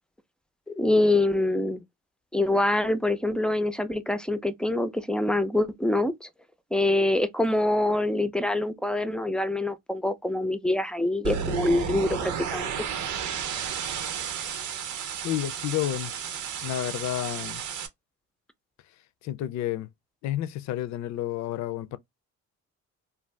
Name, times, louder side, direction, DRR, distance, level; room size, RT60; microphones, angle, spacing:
voice 1, 0.7-1.8 2.3-6.3 6.7-12.7, left 2 dB, 5° left, 0.4 m, -25 dB
sound 1, 11.2-17.9, right 7 dB, 70° right, 0.7 m, -32 dB
voice 2, 15.2-16.2 16.6-17.6 19.2-19.9 20.2-22.0, left 13 dB, 65° left, 0.4 m, -30 dB
2.5 x 2.3 x 3.2 m
cardioid pair, 90°, 30 cm